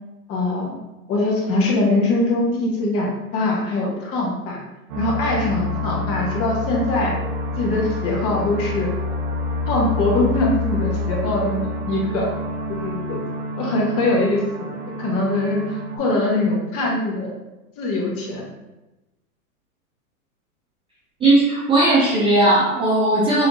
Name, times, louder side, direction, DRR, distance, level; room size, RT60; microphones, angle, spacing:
voice 1, 0.3-0.8 1.1-4.6 5.0-7.2 7.6-8.9 9.7-12.3 12.7-13.2 13.6-17.3 17.8-18.5, left 2 dB, 30° left, -2 dB, 1.1 m, -22 dB
sound 1, 4.9-16.0, left 2 dB, 70° right, 1.0 m, -27 dB
voice 2, 21.2-23.5, right 2 dB, 15° right, -7 dB, 0.5 m, -17 dB
5.9 x 2.9 x 2.5 m, 1.0 s
hypercardioid pair, 125°, 44 cm